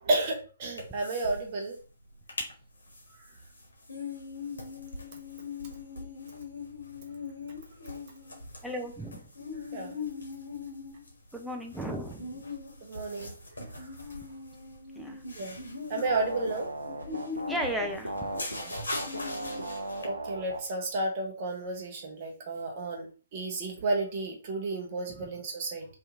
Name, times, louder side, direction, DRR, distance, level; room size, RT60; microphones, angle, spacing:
voice 1, 0.0-1.8 9.7-9.9 12.8-13.3 15.4-15.6 15.9-16.7 18.6-18.7 20.0-23.1 23.3-25.8, right 2 dB, 40° right, 1 dB, 0.8 m, -32 dB
sound 1, 0.8-1.4 1.7-1.8 2.1-2.5 2.9-20.0, left 4 dB, 70° left, 0.8 m, -40 dB
voice 2, 8.6-9.2 11.3-12.4 15.0-15.2 17.5-18.3 25.1-25.2, right 1 dB, ahead, 2 dB, 0.4 m, -35 dB
sound 2, 16.0-20.6 21.2-21.3, right 1 dB, 85° right, 0.5 m, -37 dB
2.7 x 2.4 x 2.4 m, 0.36 s
figure-of-eight pair, 125°, 0 cm